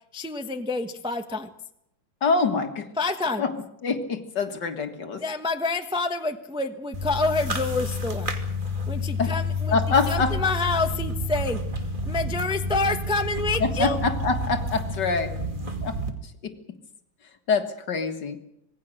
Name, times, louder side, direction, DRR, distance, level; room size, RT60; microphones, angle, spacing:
voice 1, 0.1-1.5 3.0-3.5 5.2-8.3 8.9-9.8 10.1-11.6 12.1-14.0, left 3 dB, 5° right, 6 dB, 0.9 m, -27 dB
voice 2, 2.2-2.9 3.4-3.5 3.8-5.2 9.2-9.3 9.7-10.4 13.6-15.3 15.8-16.0 16.4-16.5 17.5-18.4, left 4 dB, 55° left, 7 dB, 2.2 m, -25 dB
sound 1, 6.9-16.1, left 2 dB, 25° right, 2.5 m, -29 dB
26.0 x 19.0 x 6.5 m, 0.81 s
omnidirectional pair, 2.3 m